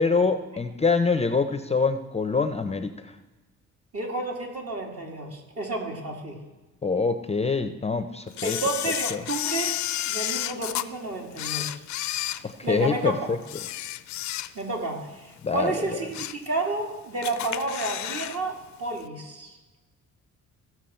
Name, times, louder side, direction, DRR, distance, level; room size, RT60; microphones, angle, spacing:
voice 1, 0.0-3.0 6.8-8.6 9.1-9.2 12.4-13.4 15.4-16.1, left 4 dB, 20° left, 8 dB, 0.6 m, -25 dB
voice 2, 3.9-6.4 8.4-9.8 10.1-11.8 12.3-13.4 14.5-19.6, right 2 dB, 50° right, 0 dB, 2.5 m, -31 dB
Camera, 8.4-10.9 11.3-13.0 13.4-14.8 15.2-15.3 15.8-16.5 16.8-16.9 17.2-18.4 18.6-18.7, left 14 dB, 70° left, 0.5 m, -31 dB
16.0 x 6.0 x 4.4 m, 1.2 s
cardioid pair, 90°, 30 cm